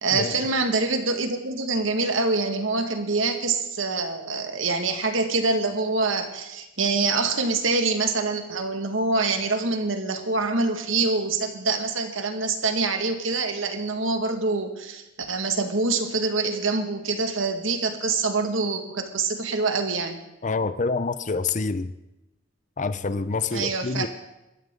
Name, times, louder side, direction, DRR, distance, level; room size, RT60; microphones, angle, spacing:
voice 1, 0.0-20.2 23.5-24.1, right 3 dB, 75° right, 5 dB, 2.1 m, -25 dB
voice 2, 20.4-21.9 22.8-24.1, left 4 dB, 40° left, 12 dB, 0.7 m, -27 dB
26.5 x 13.0 x 3.9 m, 0.93 s
head